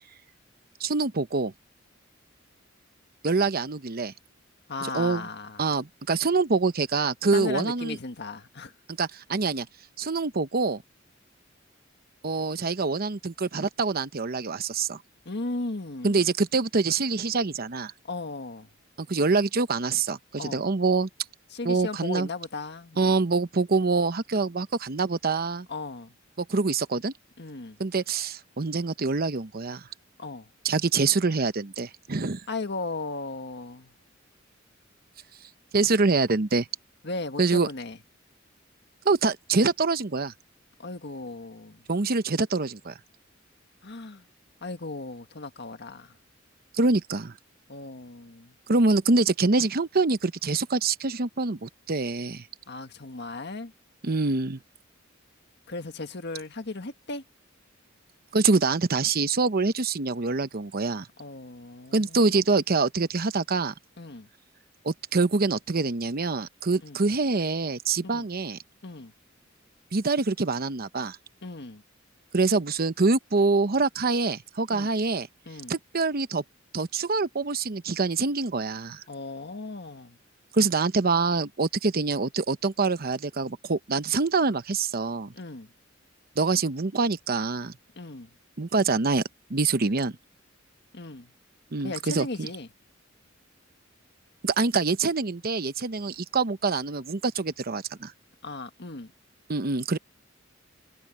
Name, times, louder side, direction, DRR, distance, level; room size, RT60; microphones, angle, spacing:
voice 1, 0.8-1.5 3.2-4.1 4.9-5.3 5.6-8.0 9.0-9.7 10.0-10.8 12.2-15.0 16.0-17.9 19.0-21.1 21.6-22.3 23.0-25.7 26.4-27.1 27.8-29.8 30.6-32.4 35.7-36.7 37.4-37.7 39.0-40.3 41.9-42.9 46.7-47.3 48.7-52.4 54.0-54.6 58.3-61.1 61.9-63.7 64.8-68.6 69.9-71.2 72.3-75.3 75.7-76.4 76.7-79.0 80.5-85.3 86.4-87.7 88.6-89.2 89.5-90.1 91.7-92.5 94.4-98.1 99.5-100.0, right 3 dB, 50° right, 0.9 m, -25 dB
voice 2, 4.7-5.7 7.3-8.7 15.3-16.2 18.0-18.7 20.4-20.6 21.5-23.2 25.7-26.1 27.4-27.8 30.2-30.5 32.5-33.9 37.0-38.0 40.8-41.8 43.8-44.3 44.6-46.2 47.7-48.5 52.7-53.7 55.7-57.2 61.2-62.4 64.0-64.3 66.8-67.0 68.0-68.3 68.8-69.1 71.4-71.8 74.7-74.9 75.5-75.8 79.1-80.2 85.3-85.7 88.0-88.3 90.9-91.3 91.8-92.7 98.4-99.1, left 3 dB, 60° left, 1.7 m, -36 dB
head